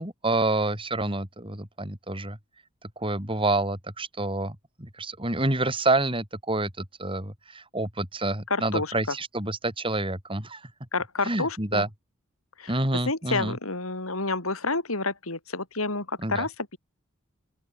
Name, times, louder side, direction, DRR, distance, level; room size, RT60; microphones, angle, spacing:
voice 1, 0.0-2.4 2.8-10.7 11.2-11.9 12.7-13.6 16.2-16.5, right 2 dB, 25° right, 5.9 m, -28 dB
voice 2, 8.5-8.9 10.9-11.8 12.6-12.7 13.1-16.8, left 3 dB, 85° left, 5.5 m, -29 dB
open air
head